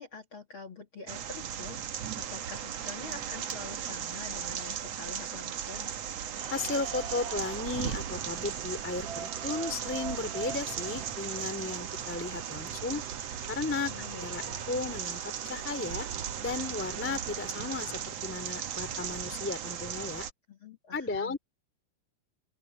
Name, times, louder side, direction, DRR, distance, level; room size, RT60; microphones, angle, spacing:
voice 1, 0.0-5.9 13.9-14.7 20.5-21.4, left 4 dB, 40° left, 2.1 m, -46 dB
sound 1, 1.1-20.3, right 9 dB, 75° right, 1.4 m, -37 dB
sound 2, 6.4-18.0, right 6 dB, 45° right, 3.2 m, -45 dB
voice 2, 6.5-13.0 13.5-13.9 14.2-14.4 14.7-16.1 16.4-20.3 20.9-21.4, left 3 dB, 5° left, 1.6 m, -35 dB
open air
omnidirectional pair, 5.0 m